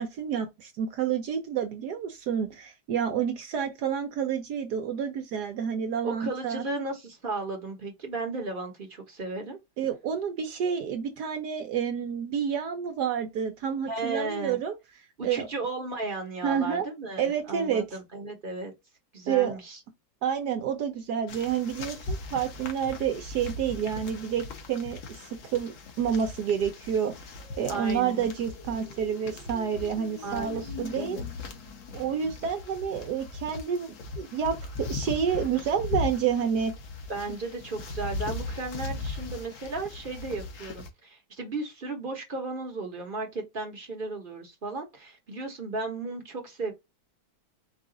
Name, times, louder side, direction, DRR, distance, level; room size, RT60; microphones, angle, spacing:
voice 1, 0.0-6.6 9.8-14.8 15.2-15.5 16.4-16.9 17.2-17.9 19.3-19.5 20.2-27.1 27.6-31.2 31.9-36.7, right 8 dB, 70° right, 1.2 m, -29 dB
voice 2, 6.0-9.6 13.9-14.6 15.2-18.7 19.1-19.8 27.7-28.3 30.2-31.2 37.1-46.7, right 3 dB, 35° right, 1.0 m, -35 dB
sound 1, 21.3-40.9, left 3 dB, 55° left, 1.1 m, -39 dB
sound 2, 27.4-32.4, left 6 dB, 80° left, 1.7 m, -45 dB
4.7 x 2.4 x 3.7 m
omnidirectional pair, 1.8 m